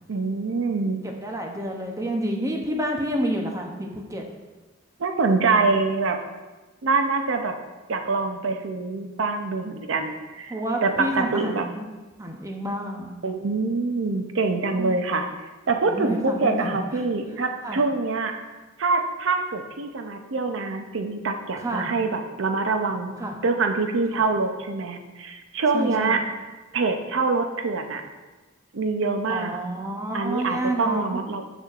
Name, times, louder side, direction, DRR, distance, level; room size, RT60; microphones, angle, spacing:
voice 1, 0.1-1.0 5.0-6.2 6.8-7.5 7.9-11.7 13.2-15.3 15.7-18.4 18.8-23.2 23.4-26.2 26.7-28.0 28.7-29.6 30.1-31.4, right 3 dB, 80° right, 6 dB, 0.6 m, -25 dB
voice 2, 1.2-4.2 10.5-11.8 12.2-13.1 14.8-14.9 15.9-17.1 17.6-17.8 21.6-21.9 23.2-23.3 24.1-24.2 25.7-26.1 29.3-31.2, right 1 dB, 15° right, 2 dB, 0.7 m, -29 dB
6.6 x 6.3 x 2.4 m, 1.2 s
head